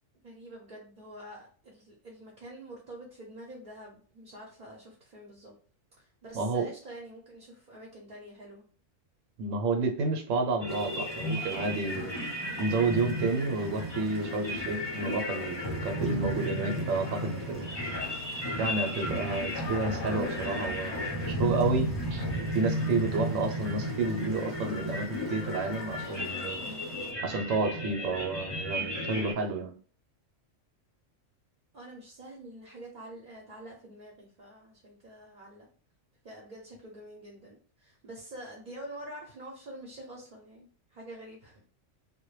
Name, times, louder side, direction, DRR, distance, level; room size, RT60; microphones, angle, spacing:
voice 1, 0.2-5.5 6.0-8.6 31.7-35.7 36.2-41.6, right 1 dB, 45° right, -2 dB, 0.6 m, -47 dB
voice 2, 6.3-6.7 9.4-12.2 12.6-17.7 18.6-22.2 22.5-26.6 27.2-29.7, right 3 dB, 80° right, 4 dB, 1.0 m, -30 dB
sound 1, 10.6-29.3, left 1 dB, 40° left, 0.3 m, -34 dB
sound 2, 10.7-27.1, equal, 20° left, 0.8 m, -50 dB
2.2 x 2.1 x 3.0 m, 0.42 s
omnidirectional pair, 1.4 m